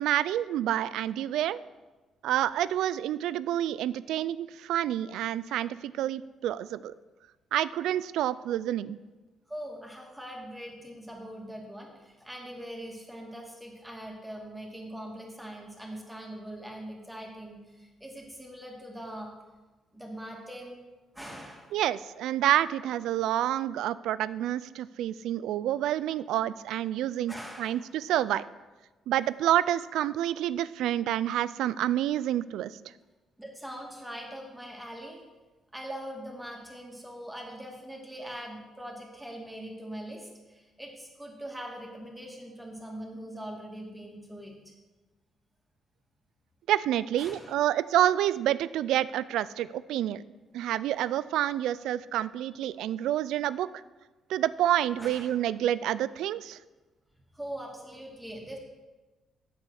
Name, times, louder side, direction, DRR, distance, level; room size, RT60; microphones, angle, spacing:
voice 1, 0.0-1.6 2.2-6.9 7.5-9.0 21.7-28.4 29.1-32.7 46.7-50.2 50.5-53.7 54.3-56.6, right 12 dB, 85° right, 17 dB, 0.3 m, -28 dB
voice 2, 9.5-19.3 19.9-20.8 21.1-21.7 27.3-27.9 33.4-35.2 35.7-44.7 47.2-47.5 55.0-55.3 57.3-58.6, equal, 5° right, 0 dB, 2.4 m, -42 dB
8.9 x 7.6 x 6.4 m, 1.2 s
cardioid pair, 90°, 0 cm